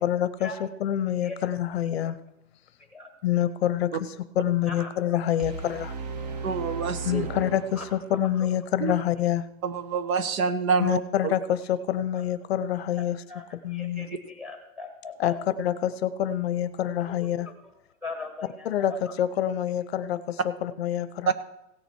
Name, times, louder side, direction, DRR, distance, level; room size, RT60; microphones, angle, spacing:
voice 1, 0.0-2.2 3.2-3.9 4.4-6.0 7.0-9.5 10.8-13.2 13.6-14.1 15.2-17.5 18.6-18.9 19.2-21.3, left 11 dB, 50° left, 14 dB, 0.6 m, -26 dB
sound 1, 5.4-8.4, right 5 dB, 30° right, 0.5 m, -36 dB
voice 2, 6.4-7.3 8.8-8.9 9.6-11.3 21.3-21.4, right 5 dB, 80° right, 11 dB, 1.4 m, -27 dB
voice 3, 13.7-15.3 17.1-17.3 18.0-19.2, left 4 dB, ahead, 5 dB, 1.2 m, -39 dB
16.5 x 7.0 x 4.6 m, 0.85 s
supercardioid pair, 175°, 42 cm